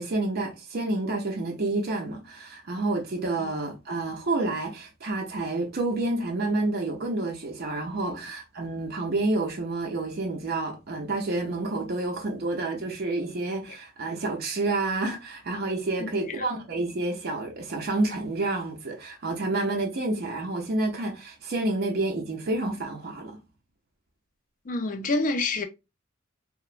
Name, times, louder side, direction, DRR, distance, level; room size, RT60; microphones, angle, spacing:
voice 1, 0.0-23.4, right 2 dB, 50° right, 0.5 m, -29 dB
voice 2, 16.0-16.4 24.7-25.6, left 2 dB, 40° left, 0.4 m, -28 dB
2.9 x 2.1 x 2.4 m
head